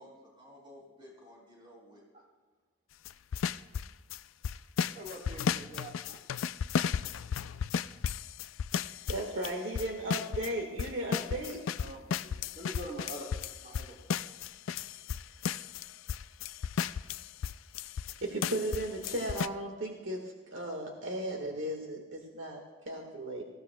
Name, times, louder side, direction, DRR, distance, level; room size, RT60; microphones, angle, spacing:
voice 1, 0.0-2.0, equal, 25° right, -2 dB, 4.4 m, -54 dB
sound 1, 3.0-4.2 4.4-10.5 10.8-18.1 18.4-19.5, left 7 dB, 85° left, 0.4 m, -34 dB
voice 2, 4.9-6.2 10.1-10.2 11.1-11.2 11.8-13.3 13.6-14.3, right 1 dB, 45° right, 0 dB, 2.9 m, -45 dB
voice 3, 9.1-11.6 15.4-15.6 18.2-23.4, right 1 dB, 70° right, 1 dB, 1.6 m, -36 dB
25.5 x 15.5 x 2.3 m, 1.4 s
head